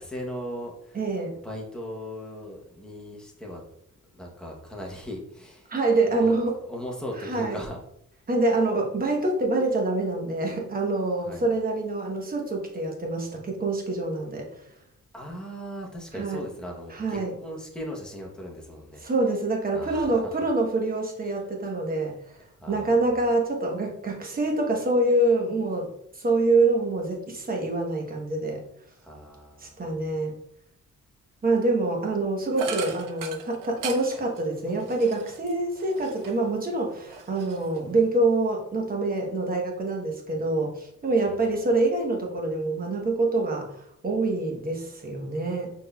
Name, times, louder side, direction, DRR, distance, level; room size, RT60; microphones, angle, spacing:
voice 1, 0.0-1.0 1.4-3.6 4.1-5.7 6.1-6.4 6.6-7.8 11.2-11.4 15.1-19.0 19.7-20.5 22.6-23.0 29.0-29.9 41.2-41.4, equal, 5° left, -1 dB, 0.8 m, -38 dB
voice 2, 0.9-1.4 5.7-6.6 7.3-7.6 8.3-14.5 16.2-16.4 16.9-17.3 19.0-25.9 26.1-28.6 29.6-30.4 31.4-45.7, right 2 dB, 30° right, 0 dB, 0.9 m, -26 dB
sound 1, 32.5-36.5 36.9-38.1, right 6 dB, 90° right, 0.7 m, -39 dB
6.1 x 3.6 x 2.3 m, 0.74 s
wide cardioid pair, 160°, 32 cm